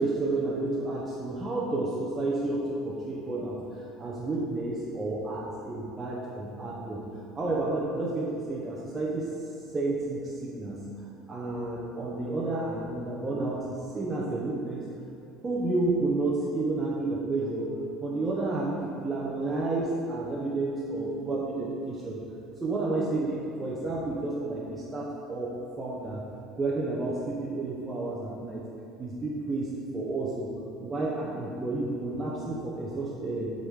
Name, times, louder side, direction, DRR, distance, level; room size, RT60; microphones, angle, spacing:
voice 1, 0.0-7.0 7.3-9.3 9.7-10.8 11.3-14.8 15.4-17.7 18.0-22.2 22.6-26.2 26.6-28.6 29.0-30.5 30.8-33.5, right 2 dB, 20° right, -5 dB, 1.0 m, -31 dB
7.6 x 4.1 x 5.0 m, 2.5 s
figure-of-eight pair, 65°, 0 cm